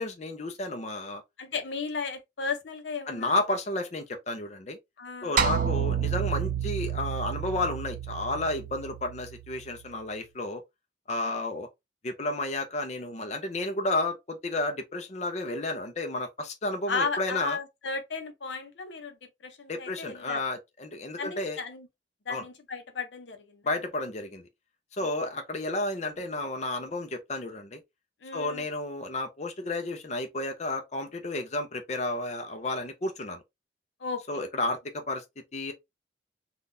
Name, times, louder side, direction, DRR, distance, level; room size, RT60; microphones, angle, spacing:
voice 1, 0.0-1.2 3.1-4.8 5.2-10.6 11.1-11.7 12.0-17.6 19.7-21.6 22.3-22.4 23.6-24.5 25.0-27.8 28.3-33.4 34.3-34.8 35.1-35.2 35.5-35.7, left 2 dB, 40° left, 0.6 m, -32 dB
voice 2, 1.4-3.3 5.0-5.4 11.2-11.3 16.9-19.2 19.4-20.4 21.2-21.9 22.3-23.7 25.0-25.1 28.2-28.6 34.0-34.5, left 4 dB, 90° left, 0.7 m, -35 dB
sound 1, 5.4-9.8, right 7 dB, 45° right, 0.4 m, -30 dB
3.6 x 2.4 x 2.6 m
head